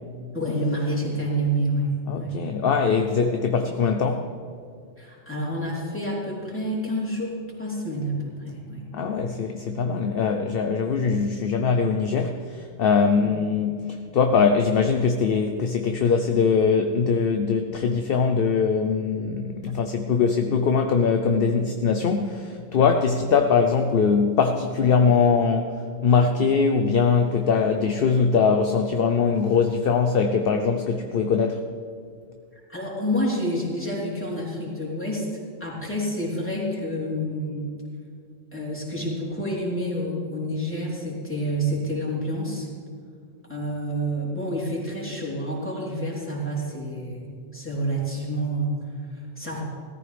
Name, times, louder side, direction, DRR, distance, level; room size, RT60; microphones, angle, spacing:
voice 1, 0.3-2.4 5.0-7.3 7.6-8.9 13.2-13.3 32.7-35.3 35.6-37.7 38.5-42.7 43.5-47.2 47.5-49.6, equal, 10° left, -6 dB, 3.5 m, -28 dB
voice 2, 2.1-4.3 8.9-13.8 14.1-31.7, left 5 dB, 55° left, 6 dB, 0.8 m, -22 dB
17.5 x 14.0 x 3.4 m, 2.2 s
omnidirectional pair, 1.3 m